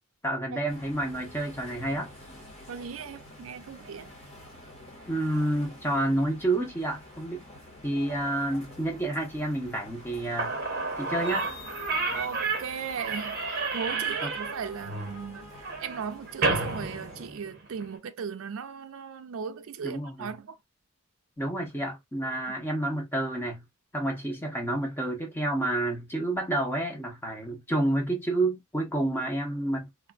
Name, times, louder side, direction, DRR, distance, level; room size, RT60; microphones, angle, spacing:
voice 1, 0.2-2.1 5.1-7.4 7.8-10.5 11.0-11.5 14.2-14.3 19.8-20.3 21.4-23.6 23.9-29.9, right 1 dB, 10° left, 0.7 m, -29 dB
sound 1, 0.7-17.3, left 1 dB, 30° left, 1.1 m, -48 dB
voice 2, 2.7-4.2 12.1-20.6 22.5-22.6, right 6 dB, 70° right, 0.4 m, -37 dB
Slam / Squeak, 10.1-10.2 10.4-17.9, right 3 dB, 45° right, 0.8 m, -31 dB
3.2 x 2.1 x 2.2 m
head